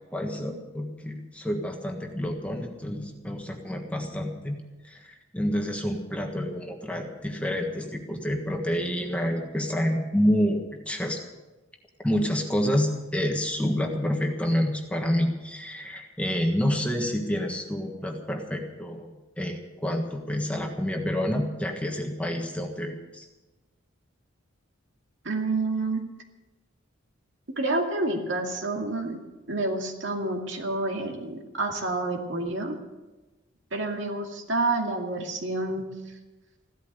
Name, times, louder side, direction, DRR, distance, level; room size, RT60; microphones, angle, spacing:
voice 1, 0.0-4.6 4.8-11.2 12.0-19.1 19.4-23.3, equal, 5° left, 2 dB, 1.5 m, -28 dB
voice 2, 25.2-26.0 27.6-29.2 29.5-32.8 33.7-35.8, right 2 dB, 65° right, 2 dB, 2.3 m, -28 dB
16.0 x 12.5 x 6.7 m, 1.1 s
head